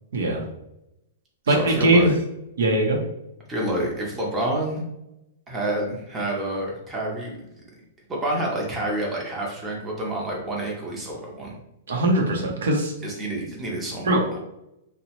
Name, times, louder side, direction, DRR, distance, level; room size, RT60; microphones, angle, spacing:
voice 1, 0.1-0.4 1.5-2.1 2.6-3.0 11.9-12.9 14.0-14.4, right 1 dB, 85° right, 1 dB, 0.7 m, -20 dB
voice 2, 1.5-2.1 3.5-4.8 5.5-7.4 8.1-11.5 13.0-14.4, right 1 dB, 15° right, -3 dB, 0.6 m, -28 dB
2.8 x 2.1 x 2.9 m, 0.85 s
hypercardioid pair, 160°, 0 cm